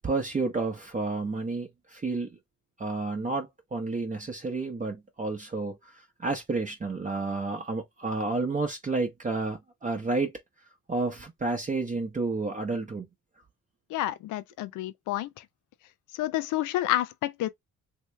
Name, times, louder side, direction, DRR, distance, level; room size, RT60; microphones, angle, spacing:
voice 1, 0.0-2.4 2.8-10.3 10.9-13.1, right 3 dB, 25° right, 0.8 m, -30 dB
voice 2, 13.9-15.4 16.1-17.5, left 14 dB, 85° left, 0.6 m, -29 dB
3.1 x 2.9 x 3.2 m
cardioid pair, 90°, 30 cm